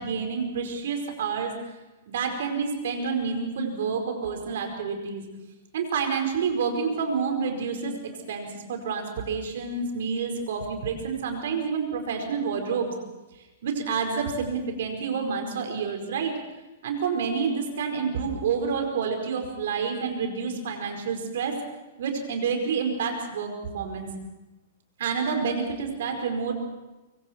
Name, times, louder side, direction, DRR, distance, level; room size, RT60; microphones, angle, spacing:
voice 1, 0.0-1.5 2.1-5.3 5.7-7.9 8.3-12.9 13.6-16.3 16.8-21.5 22.0-24.1 25.0-26.7, right 5 dB, 65° right, 4 dB, 5.0 m, -28 dB
25.0 x 24.0 x 4.6 m, 1.1 s
hypercardioid pair, 110°, 0 cm